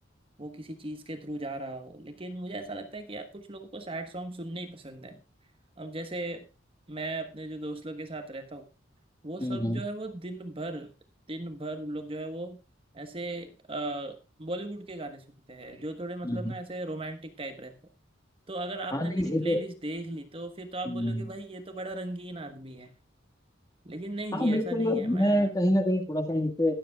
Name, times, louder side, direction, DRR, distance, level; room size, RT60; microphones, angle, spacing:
voice 1, 0.4-5.2 5.8-6.5 6.9-8.7 9.2-10.9 11.3-12.6 12.9-17.7 18.5-22.9 23.8-25.5, right 2 dB, 30° right, 7 dB, 1.2 m, -37 dB
voice 2, 9.4-9.8 16.2-16.5 18.9-19.6 20.9-21.3 24.3-26.7, equal, 20° left, 4 dB, 1.7 m, -26 dB
20.5 x 7.6 x 2.3 m, 0.31 s
head